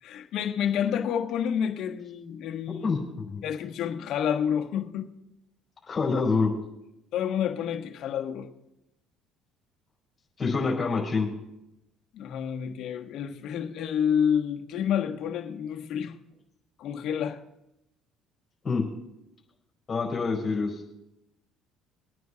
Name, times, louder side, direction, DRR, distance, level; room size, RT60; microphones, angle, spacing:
voice 1, 0.0-2.9 3.4-5.1 7.1-8.5 12.1-16.1 16.8-17.4, left 8 dB, 65° left, 4 dB, 1.3 m, -29 dB
voice 2, 2.8-3.4 5.9-6.5 10.4-11.3 18.6-18.8 19.9-20.9, left 4 dB, 35° left, -3 dB, 4.1 m, -26 dB
23.0 x 9.3 x 2.9 m, 0.88 s
supercardioid pair, 80°, 0 cm